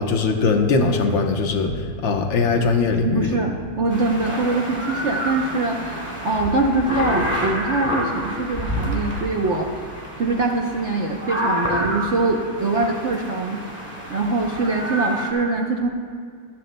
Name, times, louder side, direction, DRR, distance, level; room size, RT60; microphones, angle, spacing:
voice 1, 0.0-3.4, left 4 dB, 80° left, 3 dB, 1.8 m, -20 dB
voice 2, 3.0-9.7 10.2-13.6 14.1-15.9, right 2 dB, 55° right, 1 dB, 0.8 m, -23 dB
sound 1, 3.9-15.3, equal, 5° left, 2.7 m, -28 dB
24.5 x 11.0 x 2.2 m, 2.2 s
omnidirectional pair, 2.1 m